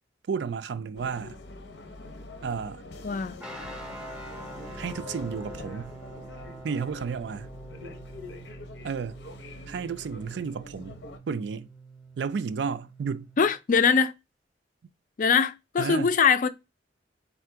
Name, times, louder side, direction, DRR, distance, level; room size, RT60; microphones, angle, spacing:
voice 1, 0.3-1.4 2.4-2.8 4.8-5.9 6.6-7.5 8.8-9.2 9.7-11.0 11.3-11.7 12.2-13.3 15.8-16.1, right 6 dB, 75° right, 0.4 m, -32 dB
sound 1, 0.9-11.2, left 2 dB, 80° left, 0.7 m, -45 dB
voice 2, 3.0-3.4 13.4-14.1 15.2-16.5, left 6 dB, 45° left, 0.4 m, -22 dB
sound 2, 3.4-13.6, right 1 dB, 5° right, 0.6 m, -45 dB
3.6 x 2.5 x 4.5 m
head